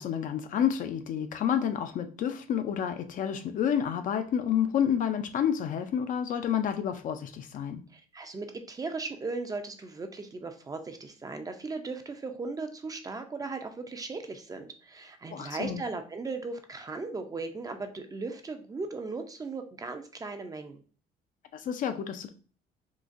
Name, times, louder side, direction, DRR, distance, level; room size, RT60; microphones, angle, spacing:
voice 1, 0.0-7.8 15.3-15.8 21.5-22.3, left 8 dB, 50° left, 0.4 m, -29 dB
voice 2, 7.9-20.8, right 3 dB, 20° right, 0.4 m, -37 dB
3.8 x 2.5 x 2.4 m
cardioid pair, 110°, 17 cm